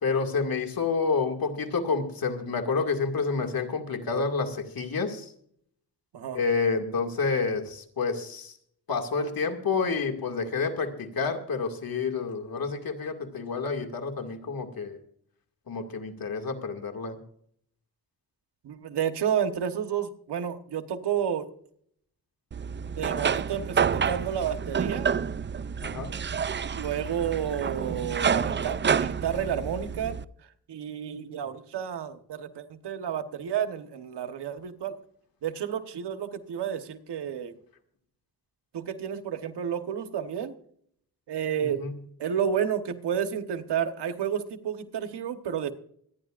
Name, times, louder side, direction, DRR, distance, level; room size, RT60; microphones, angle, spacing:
voice 1, 0.0-5.3 6.3-8.5 8.9-15.0 15.7-17.2 25.8-26.1 41.6-41.9, left 4 dB, 60° left, 4 dB, 2.3 m, -29 dB
voice 2, 18.6-21.5 22.9-25.1 26.7-30.2 30.7-34.9 35.4-37.5 38.7-40.5 41.3-41.8 42.2-45.7, right 8 dB, 90° right, 8 dB, 1.3 m, -31 dB
sound 1, 22.5-30.2, right 7 dB, 30° right, 0.4 m, -29 dB
25.5 x 10.5 x 2.5 m, 0.64 s
cardioid pair, 75°, 40 cm